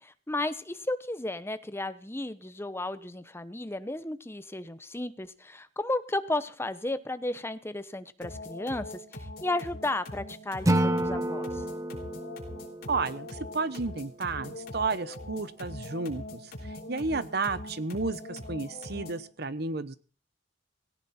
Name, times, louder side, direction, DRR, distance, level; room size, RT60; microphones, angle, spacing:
voice 1, 0.0-11.6, left 2 dB, 15° left, 13 dB, 0.9 m, -34 dB
sound 1, 8.2-19.3, left 1 dB, 55° left, 4.8 m, -42 dB
Acoustic guitar / Strum, 10.7-13.8, right 1 dB, 20° right, 0.9 m, -30 dB
voice 2, 12.9-20.0, right 3 dB, 60° right, 14 dB, 1.1 m, -32 dB
17.5 x 17.5 x 4.4 m, 0.39 s
head